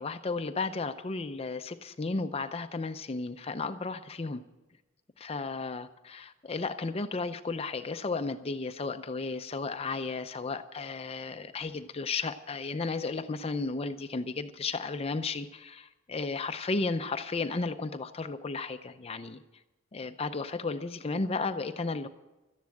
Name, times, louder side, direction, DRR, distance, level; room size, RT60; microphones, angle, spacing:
voice 1, 0.0-4.4 5.2-19.4 19.9-22.1, left 3 dB, 30° left, 9 dB, 0.5 m, -34 dB
13.0 x 10.5 x 7.6 m, 1.0 s
head